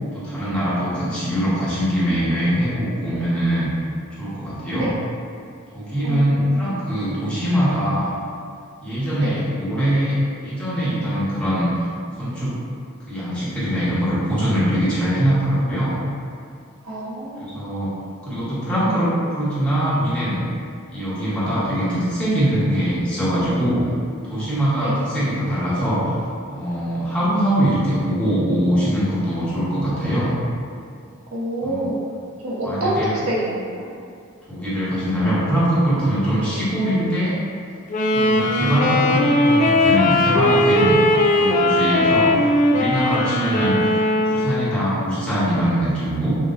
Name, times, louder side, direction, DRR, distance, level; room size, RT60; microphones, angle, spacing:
voice 1, 0.1-3.7 4.2-4.9 5.7-8.1 8.8-10.2 10.4-11.8 12.1-12.5 13.1-16.0 17.4-17.9 18.2-20.4 20.9-23.8 24.2-26.0 26.5-30.3 31.6-31.9 32.6-33.1 34.5-37.4 38.1-41.0 41.3-42.3 42.7-43.8 44.2-46.3, equal, 5° left, -11 dB, 1.0 m, -22 dB
voice 2, 6.0-6.6 9.2-9.3 16.8-17.6 24.7-25.0 31.3-32.0 32.4-33.9 36.4-36.5 41.1-41.4, right 1 dB, 75° right, -5 dB, 0.8 m, -27 dB
Wind instrument woodwind instrument, 37.9-44.7, left 1 dB, 35° left, 0.3 m, -18 dB
5.7 x 2.3 x 2.5 m, 2.3 s
head